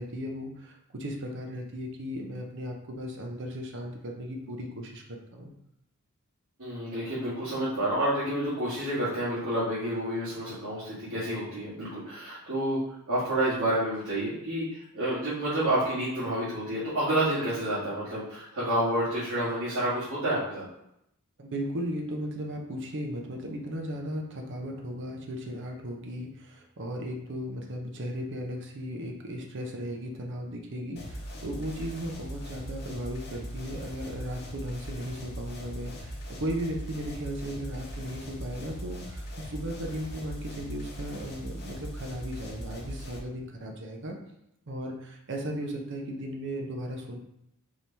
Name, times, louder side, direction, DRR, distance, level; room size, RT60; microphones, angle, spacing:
voice 1, 0.0-5.0 5.3-5.5 21.4-44.2 44.7-47.2, equal, 55° right, 2 dB, 0.7 m, -36 dB
voice 2, 6.6-12.8 13.1-20.6, right 1 dB, 70° right, -12 dB, 1.7 m, -29 dB
sound 1, 31.0-43.2, equal, 45° left, 0.9 m, -40 dB
4.6 x 2.8 x 3.4 m, 0.80 s
head